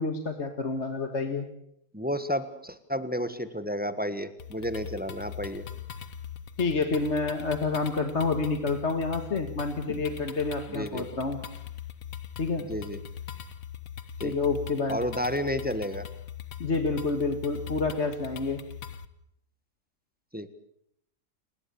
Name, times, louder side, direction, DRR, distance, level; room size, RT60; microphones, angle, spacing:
voice 1, 0.0-1.5 6.6-11.4 12.4-12.6 14.2-15.0 16.6-18.6, left 3 dB, 45° left, 6 dB, 2.1 m, -28 dB
voice 2, 1.9-5.6 10.7-11.1 12.7-13.0 14.2-14.3 14.9-16.1 20.3-20.5, equal, 5° right, 11 dB, 1.3 m, -31 dB
sound 1, 4.4-19.1, left 9 dB, 60° left, 1.6 m, -41 dB
30.0 x 20.5 x 7.1 m, 0.73 s
omnidirectional pair, 1.6 m